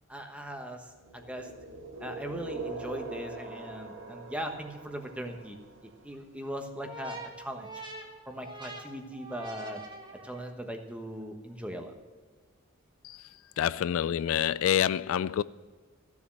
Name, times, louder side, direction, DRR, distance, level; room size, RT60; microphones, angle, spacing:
voice 1, 0.1-1.5 2.0-5.6 5.8-7.8 8.3-9.8 10.2-11.9, right 1 dB, 5° right, 1.1 m, -39 dB
sound 1, 1.0-6.0, right 3 dB, 60° right, 2.1 m, -42 dB
sound 2, 6.8-10.7, right 1 dB, 20° right, 1.5 m, -44 dB
voice 2, 13.6-15.4, left 9 dB, 70° left, 0.3 m, -27 dB
15.0 x 7.3 x 6.3 m
head